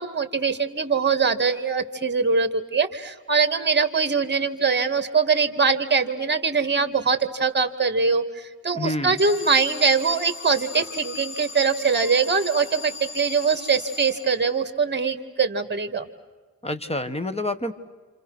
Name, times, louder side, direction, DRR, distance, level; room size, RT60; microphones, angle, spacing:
voice 1, 0.0-16.1, right 5 dB, 30° right, 9 dB, 2.0 m, -22 dB
voice 2, 8.7-9.2 16.6-17.7, left 2 dB, 15° left, 10 dB, 1.6 m, -28 dB
Alarm, 9.2-14.7, left 4 dB, 35° left, 2.3 m, -38 dB
29.0 x 28.0 x 6.3 m, 1.4 s
wide cardioid pair, 95°, 35 cm